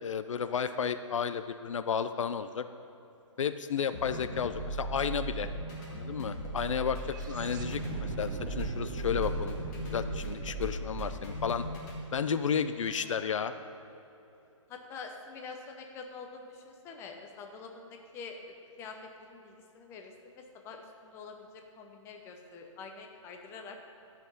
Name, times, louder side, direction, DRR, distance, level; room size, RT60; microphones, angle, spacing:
voice 1, 0.0-2.6 3.4-5.5 5.9-9.6 9.9-11.6 12.1-13.5, left 7 dB, 70° left, 11 dB, 0.5 m, -32 dB
sound 1, 3.9-12.0, right 1 dB, 30° left, 2.1 m, -38 dB
sound 2, 4.5-12.7, right 4 dB, 35° right, 0.5 m, -41 dB
voice 2, 12.7-13.2 14.7-18.4 18.8-23.8, left 4 dB, 15° left, 3 dB, 0.7 m, -46 dB
12.5 x 6.0 x 5.5 m, 2.8 s
hypercardioid pair, 150°, 17 cm